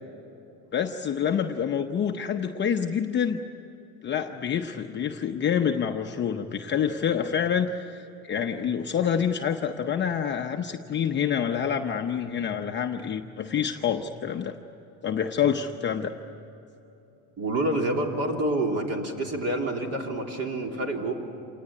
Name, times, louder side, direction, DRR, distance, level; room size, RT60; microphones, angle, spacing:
voice 1, 0.7-3.4 4.0-8.0 8.3-14.6 15.0-16.1, left 8 dB, 25° left, 3 dB, 0.8 m, -27 dB
voice 2, 17.4-21.1, right 1 dB, 35° right, 2 dB, 3.3 m, -27 dB
27.5 x 19.0 x 9.5 m, 3.0 s
cardioid pair, 150°, 40 cm